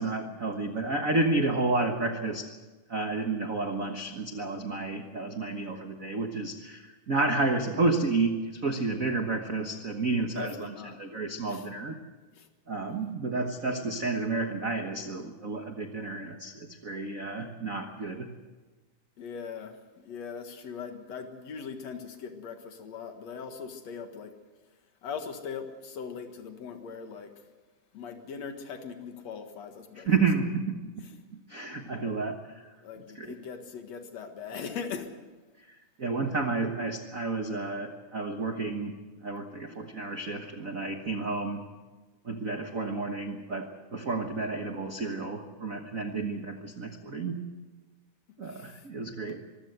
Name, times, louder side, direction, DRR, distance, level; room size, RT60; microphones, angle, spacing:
voice 1, 0.0-2.5 2.9-12.0 12.7-18.3 29.9-32.7 33.1-33.3 36.0-38.9 39.2-41.6 42.2-47.4 48.4-49.4, right 3 dB, 60° right, 5 dB, 0.8 m, -31 dB
voice 2, 10.1-11.0 11.4-11.7 12.3-12.5 19.2-24.3 25.0-27.3 27.9-30.1 31.0-31.1 32.8-35.1 48.4-48.9, left 6 dB, 60° left, 6 dB, 2.6 m, -40 dB
24.0 x 15.5 x 8.0 m, 1.3 s
omnidirectional pair, 3.7 m